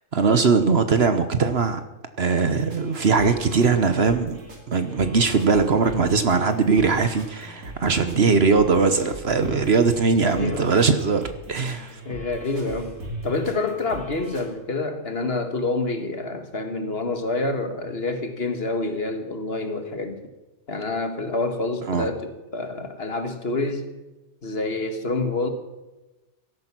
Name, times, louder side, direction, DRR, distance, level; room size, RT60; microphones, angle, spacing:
voice 1, 0.1-1.8 2.2-4.4 4.7-12.0 21.9-22.1, right 4 dB, 50° right, 9 dB, 1.2 m, -20 dB
sound 1, 2.5-14.5, right 1 dB, 85° right, 3.4 m, -40 dB
voice 2, 10.2-10.7 12.1-13.0 13.2-20.2 20.7-23.9 24.4-25.5, left 3 dB, 45° left, 7 dB, 1.7 m, -27 dB
16.5 x 13.0 x 6.1 m, 1.1 s
omnidirectional pair, 1.4 m